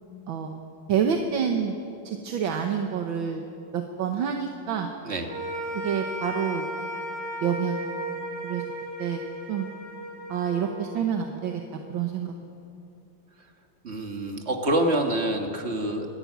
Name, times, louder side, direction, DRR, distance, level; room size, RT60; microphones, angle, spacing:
voice 1, 0.3-0.6 0.9-1.8 2.1-3.4 3.7-4.9 5.7-6.7 7.4-7.8 8.4-8.6 9.0-9.2 9.5-9.7 10.3-11.6 11.9-12.3, right 7 dB, 70° right, 4 dB, 1.8 m, -27 dB
sound 1, 5.3-11.7, right 1 dB, 50° right, 5.9 m, -35 dB
voice 2, 13.8-16.1, right 1 dB, 35° right, 3 dB, 1.9 m, -26 dB
25.0 x 11.5 x 9.5 m, 2.7 s
omnidirectional pair, 2.3 m